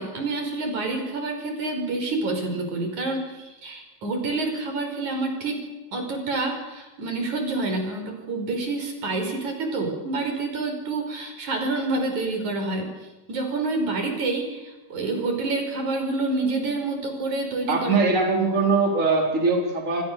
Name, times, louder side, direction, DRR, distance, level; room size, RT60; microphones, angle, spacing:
voice 1, 0.0-5.6 5.9-12.9 13.3-18.0, right 3 dB, 65° right, 4 dB, 6.5 m, -28 dB
voice 2, 17.7-20.0, right 3 dB, 20° right, 1 dB, 4.8 m, -21 dB
29.5 x 24.5 x 6.9 m, 1.1 s
omnidirectional pair, 3.7 m